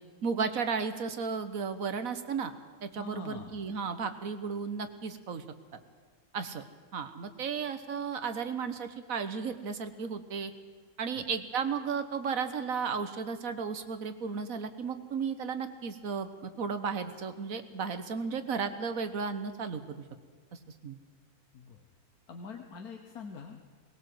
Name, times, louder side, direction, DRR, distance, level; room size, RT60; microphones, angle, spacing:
voice 1, 0.2-2.5 2.8-5.4 6.3-6.6 6.9-10.5 11.0-20.0 20.8-21.0, right 5 dB, 60° right, 10 dB, 1.5 m, -34 dB
voice 2, 3.0-3.6 11.2-11.3 21.5-21.8 22.3-23.6, left 5 dB, 65° left, 5 dB, 1.6 m, -44 dB
20.0 x 17.5 x 7.8 m, 1.5 s
omnidirectional pair, 1.7 m